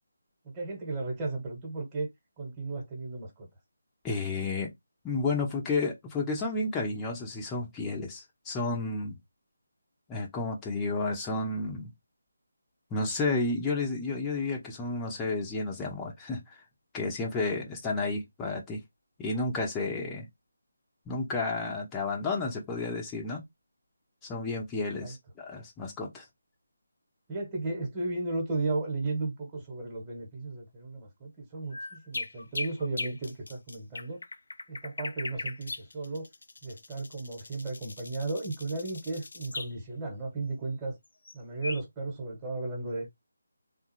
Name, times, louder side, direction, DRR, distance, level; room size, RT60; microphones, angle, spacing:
voice 1, 0.5-2.1 2.4-3.5 25.0-25.1 27.3-34.2 34.7-36.3 36.6-41.0 41.3-43.1, right 3 dB, 15° right, 1.3 m, -35 dB
voice 2, 4.0-4.7 5.0-9.2 10.1-11.9 12.9-16.4 16.9-18.8 19.2-20.3 21.1-23.4 24.3-26.2, left 3 dB, 10° left, 0.7 m, -31 dB
sound 1, 31.7-39.7 41.3-41.4 41.6-41.8, left 3 dB, 60° left, 0.4 m, -39 dB
3.5 x 2.4 x 3.1 m
figure-of-eight pair, 155°, 0 cm